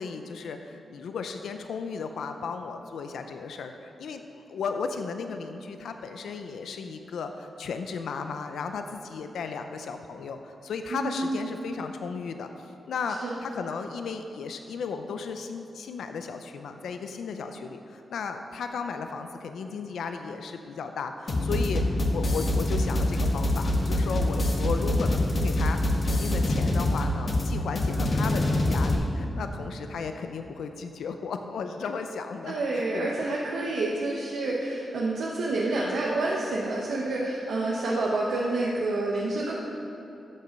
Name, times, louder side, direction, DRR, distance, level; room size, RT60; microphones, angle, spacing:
voice 1, 0.0-12.5 12.9-25.8 26.1-33.3, left 5 dB, 90° left, 6 dB, 0.5 m, -35 dB
voice 2, 10.9-11.4 13.2-13.3 32.5-39.5, right 2 dB, 85° right, -4 dB, 1.0 m, -28 dB
sound 1, 21.3-29.0, left 1 dB, 50° left, 1.4 m, -25 dB
13.5 x 5.5 x 5.2 m, 3.0 s
cardioid pair, 75°, 0 cm